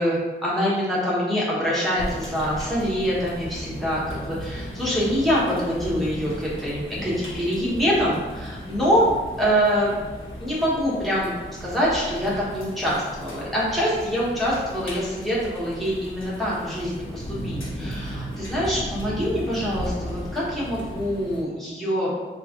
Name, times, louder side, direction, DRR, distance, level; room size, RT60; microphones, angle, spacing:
voice 1, 0.0-9.1 9.4-9.9 10.4-11.3 11.6-22.1, equal, ahead, -8 dB, 0.9 m, -25 dB
sound 1, 1.9-21.4, equal, 75° left, 0.9 m, -36 dB
3.1 x 2.4 x 3.6 m, 1.3 s
wide cardioid pair, 165°, 21 cm